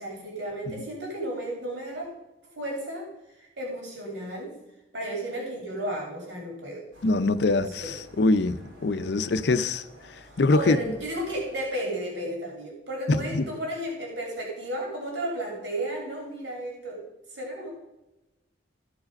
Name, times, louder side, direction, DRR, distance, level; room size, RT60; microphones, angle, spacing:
voice 1, 0.0-2.1 2.6-3.1 3.4-4.5 4.9-6.9 7.5-7.9 10.5-17.0 17.3-17.7, right 1 dB, 70° right, 2.9 m, -33 dB
sound 1, 6.9-11.7, equal, 85° right, 3.1 m, -52 dB
voice 2, 7.0-10.9 13.1-13.5, left 2 dB, 65° left, 0.5 m, -24 dB
14.5 x 4.9 x 5.2 m
head